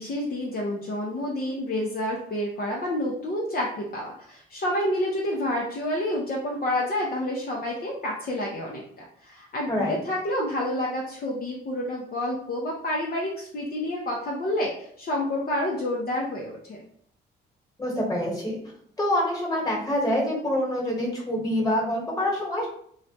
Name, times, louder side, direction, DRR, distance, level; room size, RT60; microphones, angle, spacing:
voice 1, 0.0-16.8, left 1 dB, 50° left, -3 dB, 0.7 m, -29 dB
voice 2, 17.8-18.6 19.0-22.7, left 1 dB, 20° left, -2 dB, 1.4 m, -26 dB
2.4 x 2.2 x 4.0 m, 0.65 s
cardioid pair, 90°, 20 cm